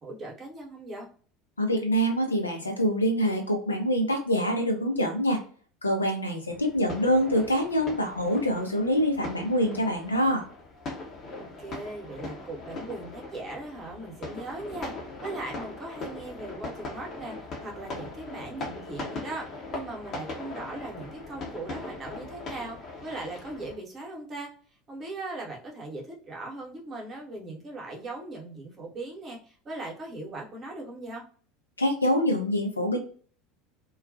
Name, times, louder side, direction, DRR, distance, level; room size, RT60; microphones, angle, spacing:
voice 1, 0.0-1.1 11.4-14.9 15.2-22.8 23.0-24.5 24.9-31.2, right 2 dB, 30° right, -1 dB, 0.9 m, -39 dB
voice 2, 1.6-5.4 5.8-10.4 31.8-33.0, equal, 80° left, 3 dB, 0.6 m, -25 dB
sound 1, 6.5-23.8, left 2 dB, 35° left, 0.7 m, -40 dB
2.2 x 2.1 x 2.5 m, 0.43 s
figure-of-eight pair, 70°, 0 cm